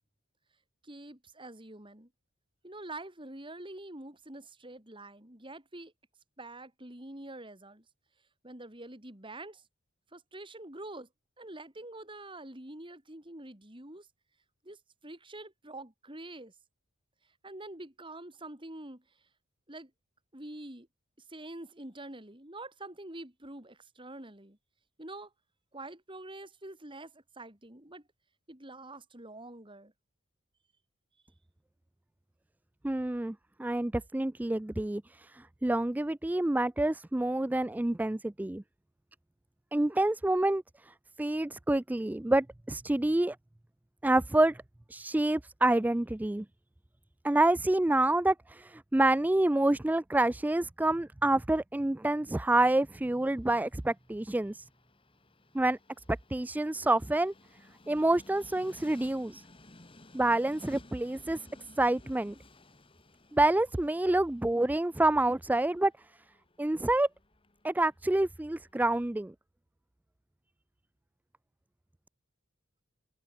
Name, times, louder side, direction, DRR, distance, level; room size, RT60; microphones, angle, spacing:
voice 1, 0.8-2.1 2.6-5.9 6.4-7.8 8.4-9.6 10.1-11.1 11.4-14.1 14.6-16.5 17.4-19.0 19.7-19.9 20.3-20.9 21.3-24.6 25.0-25.3 25.7-28.0 28.5-29.9, right 2 dB, 25° right, 3.5 m, -46 dB
voice 2, 32.8-38.6 39.7-43.4 44.0-44.6 44.9-46.4 47.2-54.6 55.5-55.8 56.3-57.3 57.9-59.4 60.1-61.5 61.8-62.4 63.3-65.9 66.6-67.1 67.6-69.3, right 2 dB, 10° right, 0.3 m, -28 dB
Train, 52.9-69.0, left 2 dB, 25° left, 1.9 m, -58 dB
open air
head